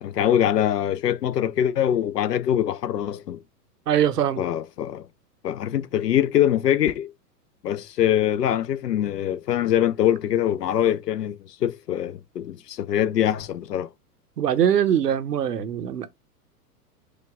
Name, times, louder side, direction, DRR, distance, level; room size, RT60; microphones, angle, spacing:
voice 1, 0.0-3.4 4.4-5.1 5.4-7.1 7.6-13.9, left 10 dB, 85° left, 0.6 m, -23 dB
voice 2, 3.9-4.4 14.4-16.1, right 9 dB, 85° right, 0.7 m, -22 dB
5.0 x 2.3 x 3.5 m
hypercardioid pair, 105°, 47 cm